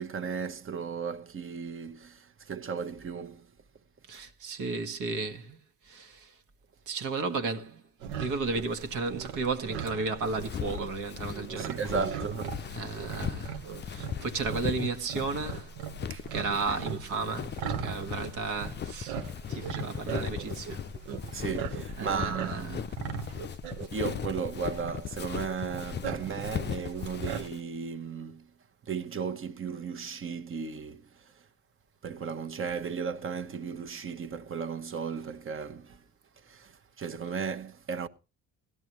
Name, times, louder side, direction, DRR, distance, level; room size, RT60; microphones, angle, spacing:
voice 1, 0.0-3.5 11.6-12.7 16.1-16.2 16.7-16.8 21.3-22.9 23.9-28.5 28.9-31.1 32.0-36.0 36.5-36.7 37.0-38.1, right 6 dB, 35° right, 1.2 m, -35 dB
voice 2, 4.1-5.6 5.8-6.3 6.9-11.8 12.6-13.6 13.9-15.7 16.0-20.8 21.3-21.4 22.0-22.8, right 4 dB, 65° right, 1.6 m, -34 dB
sound 1, 8.0-27.5, right 8 dB, 80° right, 1.2 m, -40 dB
Walk footsteps, 10.3-27.6, left 9 dB, 30° left, 0.5 m, -38 dB
16.5 x 13.0 x 3.1 m
supercardioid pair, 70°, 34 cm